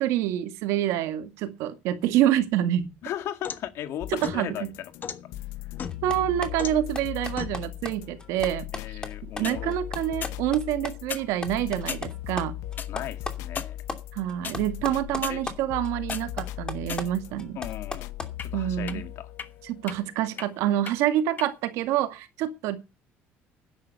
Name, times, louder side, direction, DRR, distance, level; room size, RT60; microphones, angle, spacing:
voice 1, 0.0-2.9 4.2-4.7 6.0-8.7 9.2-12.5 14.1-17.6 18.5-19.1 19.6-22.8, right 12 dB, 85° right, 2.1 m, -27 dB
sound 1, 2.8-3.7 4.2-5.2 5.8-6.2 6.6-6.9 7.4-7.6 9.2-9.6 10.2-10.4 11.0-11.3 11.9-12.1 12.8-12.9 13.5-13.7 14.4-14.6 15.2-15.4 15.8-16.2 16.8-17.4 18.4-18.5 18.9-19.0 19.4-19.5 19.9-20.0 20.4-20.5 20.9-21.0 21.4-21.5, left 7 dB, 40° left, 1.3 m, -35 dB
voice 2, 3.0-4.9 5.6-5.7 8.7-9.8 12.9-13.8 15.3-15.4 17.6-18.1 18.4-19.3, left 11 dB, 65° left, 1.8 m, -36 dB
sound 2, 4.0-21.0 21.9-22.0, left 13 dB, 85° left, 1.0 m, -39 dB
sound 3, 5.8-10.9 11.2-14.0 14.3-15.6 15.8-18.3, left 3 dB, 15° left, 2.7 m, -36 dB
11.0 x 10.5 x 6.9 m
cardioid pair, 120°, 5 cm